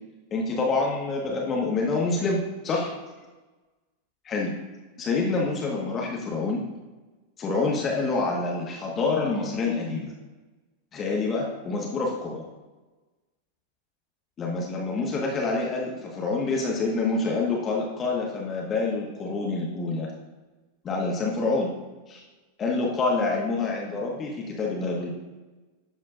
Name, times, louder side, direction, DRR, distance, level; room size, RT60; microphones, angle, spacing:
voice 1, 0.3-2.9 4.3-4.5 5.0-6.6 7.4-10.1 10.9-12.5 14.4-20.1 20.8-21.7 22.1-22.2 22.6-25.1, left 3 dB, 25° left, -2 dB, 1.6 m, -27 dB
12.0 x 7.2 x 2.6 m, 1.2 s
figure-of-eight pair, 90°, 0 cm